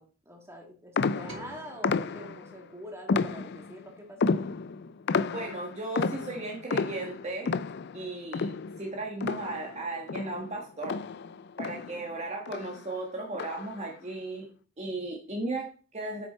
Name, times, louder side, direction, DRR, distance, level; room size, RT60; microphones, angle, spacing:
voice 1, 0.0-4.3 11.7-12.0, equal, 10° right, 1 dB, 2.1 m, -45 dB
sound 1, 1.0-2.5 3.1-3.8 4.2-9.8 10.1-12.1 12.5-12.8 13.3-13.8, left 4 dB, 50° left, 0.4 m, -31 dB
sound 2, 1.3-3.8, right 3 dB, 85° right, 5.0 m, -52 dB
voice 2, 5.3-7.5 7.9-8.5 8.8-11.0 11.6-14.5 14.8-16.3, right 2 dB, 30° right, 0 dB, 1.5 m, -36 dB
9.0 x 7.4 x 4.3 m, 0.38 s
head